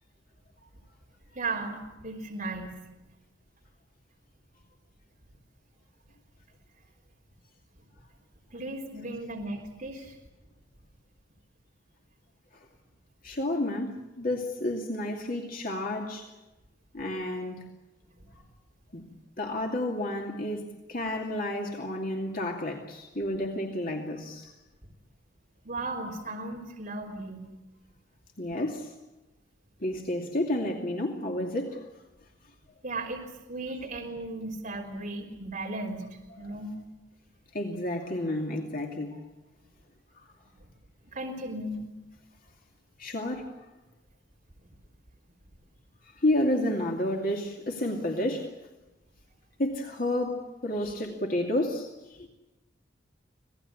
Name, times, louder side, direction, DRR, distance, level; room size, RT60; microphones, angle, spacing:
voice 1, 1.3-2.9 8.5-10.2 25.6-27.5 32.8-33.2 33.5-36.7 41.1-41.8, right 2 dB, 45° right, -1 dB, 3.8 m, -36 dB
voice 2, 13.2-16.3 16.9-17.6 18.9-19.1 19.4-24.5 28.4-28.9 29.8-31.8 36.4-36.5 37.5-39.2 43.0-43.5 46.2-48.5 49.6-52.3, left 1 dB, 50° left, 1 dB, 2.6 m, -30 dB
26.0 x 18.5 x 8.7 m, 1.1 s
head